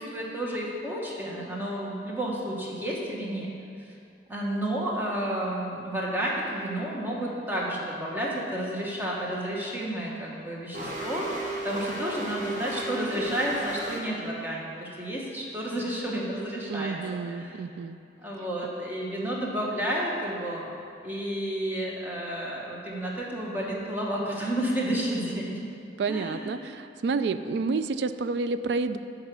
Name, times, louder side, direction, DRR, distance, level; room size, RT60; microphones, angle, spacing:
voice 1, 0.0-3.5 4.3-11.3 11.6-17.6 18.2-20.7 21.0-25.6 26.1-26.6 27.4-27.5, right 1 dB, 10° right, -4 dB, 1.1 m, -31 dB
sound 1, 10.7-14.0, right 1 dB, 45° right, 1.1 m, -35 dB
voice 2, 16.7-18.0 26.0-29.0, right 4 dB, 70° right, 11 dB, 0.3 m, -29 dB
9.5 x 3.9 x 6.0 m, 2.5 s
head